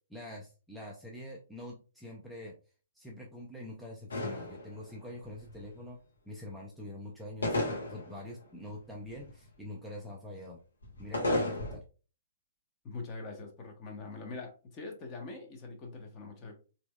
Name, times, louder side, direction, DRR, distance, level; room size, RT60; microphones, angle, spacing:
voice 1, 0.1-2.5 2.9-6.0 6.3-7.6 7.9-10.6 11.0-11.8, left 1 dB, ahead, -4 dB, 0.5 m, -45 dB
sound 1, 4.1-5.0 5.2-5.7 7.4-8.3 8.7-9.3 10.8-11.8, left 1 dB, 70° left, 1.1 m, -33 dB
voice 2, 12.8-16.5, left 3 dB, 25° left, 1 dB, 0.8 m, -43 dB
3.3 x 2.8 x 2.3 m, 0.36 s
figure-of-eight pair, 115°, 0 cm